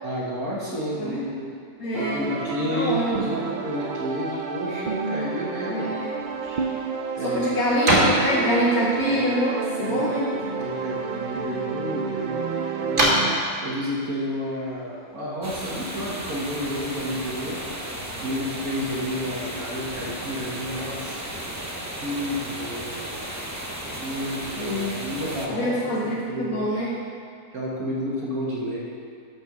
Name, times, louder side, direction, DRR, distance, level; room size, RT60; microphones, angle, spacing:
voice 1, 0.0-1.5 1.9-6.0 7.2-7.6 9.9-10.1 10.6-12.5 12.8-13.2 13.6-17.6 18.2-21.2 22.0-22.9 24.0-26.7 27.5-28.8, equal, 65° right, -6 dB, 1.9 m, -30 dB
voice 2, 1.8-3.3 5.7-6.1 7.2-10.3 24.6-24.9 25.5-27.0, equal, 65° left, -5 dB, 1.5 m, -25 dB
sound 1, 1.9-13.4, right 5 dB, 85° right, 0.4 m, -30 dB
sound 2, 6.2-15.4, right 1 dB, 35° right, 1.8 m, -29 dB
sound 3, 15.4-25.5, right 1 dB, 15° right, 0.6 m, -34 dB
12.5 x 4.6 x 6.0 m, 2.2 s
omnidirectional pair, 1.7 m